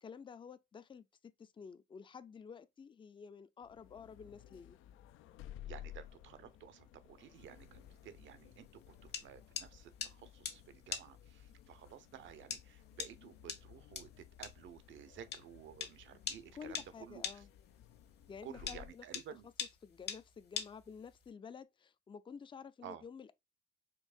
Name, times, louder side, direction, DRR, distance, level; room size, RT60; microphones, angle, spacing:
voice 1, 0.0-4.8 16.5-17.5 18.3-19.0 19.4-19.5 19.8-23.3, left 6 dB, 25° left, 0.4 m, -51 dB
sound 1, 3.6-18.9, left 12 dB, 90° left, 0.4 m, -56 dB
voice 2, 5.6-17.4 18.4-19.5 22.8-23.0, right 9 dB, 75° right, 0.7 m, -53 dB
sound 2, 7.3-21.3, left 7 dB, 55° left, 1.2 m, -45 dB
4.5 x 2.8 x 2.4 m
cardioid pair, 90°, 20 cm